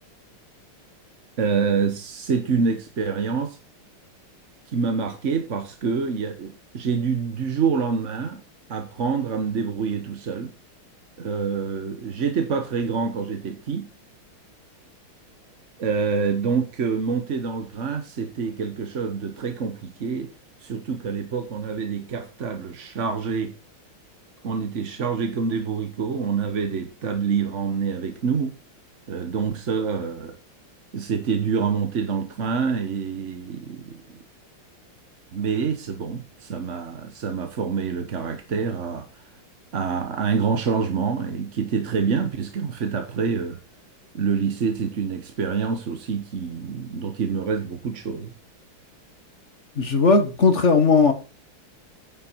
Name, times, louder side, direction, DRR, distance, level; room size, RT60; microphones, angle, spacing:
voice 1, 1.4-3.6 4.7-8.4 8.7-10.5 11.2-13.9 15.8-20.3 20.6-23.5 24.4-28.5 29.1-30.4 30.9-34.2 35.3-39.3 39.7-43.6 44.1-48.3, right 5 dB, 45° right, 1.2 m, -26 dB
voice 2, 49.8-51.1, left 4 dB, 40° left, 1.4 m, -17 dB
9.5 x 7.9 x 4.5 m
omnidirectional pair, 2.3 m